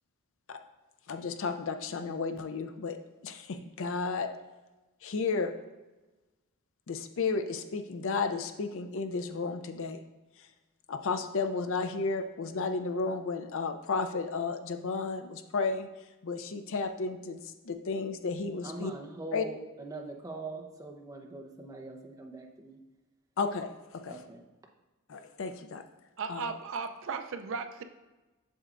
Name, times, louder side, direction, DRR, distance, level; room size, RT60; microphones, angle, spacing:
voice 1, 1.1-3.0 3.2-4.3 5.0-5.6 6.9-10.0 10.9-15.9 16.2-18.9 19.3-19.4 23.4-24.2 25.1-25.8 26.3-26.5, left 4 dB, 60° left, 8 dB, 0.5 m, -33 dB
voice 2, 18.6-22.8 24.1-24.4, right 2 dB, 15° right, 0 dB, 0.7 m, -42 dB
voice 3, 26.2-27.8, right 5 dB, 60° right, 8 dB, 0.5 m, -36 dB
7.8 x 6.5 x 2.5 m, 1.1 s
head